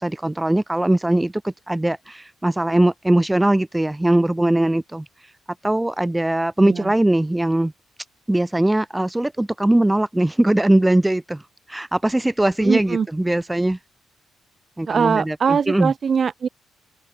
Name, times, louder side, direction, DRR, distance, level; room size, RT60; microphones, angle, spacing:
voice 1, 0.0-5.3 5.6-7.7 8.3-13.8 14.8-15.9, right 1 dB, 10° right, 0.8 m, -20 dB
voice 2, 6.6-6.9 12.6-13.1 14.9-16.5, right 6 dB, 45° right, 0.4 m, -21 dB
open air
cardioid pair, 90°, 0 cm